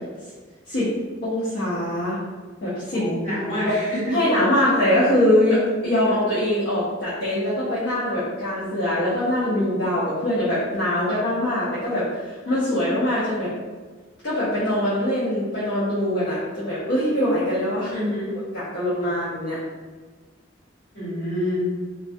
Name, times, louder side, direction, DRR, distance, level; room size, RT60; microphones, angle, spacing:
voice 1, 1.2-2.2 2.6-3.0 3.6-3.8 4.1-13.5 14.2-17.9 18.5-19.6, left 1 dB, 60° left, -10 dB, 0.6 m, -23 dB
voice 2, 2.9-4.2 17.9-18.3 20.9-21.7, left 1 dB, 40° left, -11 dB, 1.4 m, -27 dB
2.3 x 2.1 x 2.5 m, 1.4 s
head